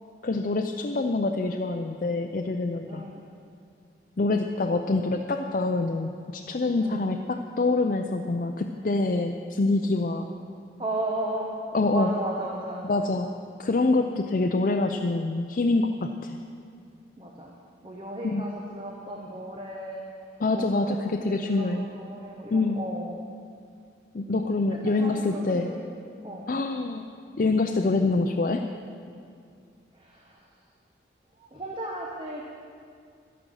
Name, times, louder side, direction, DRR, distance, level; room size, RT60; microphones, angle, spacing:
voice 1, 0.2-3.0 4.2-10.3 11.7-12.1 12.8-16.4 18.2-18.5 20.4-21.9 22.5-22.8 24.1-25.7 26.5-27.0 27.4-28.7, left 3 dB, 50° left, 4 dB, 0.5 m, -26 dB
voice 2, 2.8-3.2 6.8-7.0 10.2-10.4 10.8-11.5 11.9-12.9 17.2-17.5 17.8-20.0 20.5-21.0 21.3-23.2 25.0-25.8 26.2-26.5 29.9-30.4 31.4-32.5, right 1 dB, 25° right, -2 dB, 1.0 m, -35 dB
12.0 x 10.0 x 6.3 m, 2.3 s
head